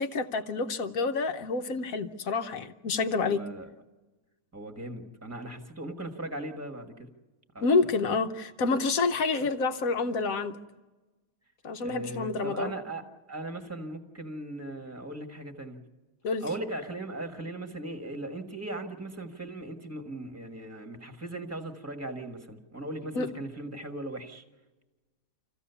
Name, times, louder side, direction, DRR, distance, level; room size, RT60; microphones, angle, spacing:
voice 1, 0.0-3.4 7.6-10.6 11.6-12.7 16.2-16.4 23.1-23.3, left 4 dB, 60° left, 8 dB, 0.9 m, -28 dB
voice 2, 3.2-3.7 4.5-7.1 7.5-7.7 9.4-9.5 11.8-13.0 13.3-15.8 16.4-24.4, right 1 dB, 10° right, 4 dB, 1.3 m, -38 dB
26.5 x 15.0 x 7.0 m, 1.2 s
omnidirectional pair, 2.3 m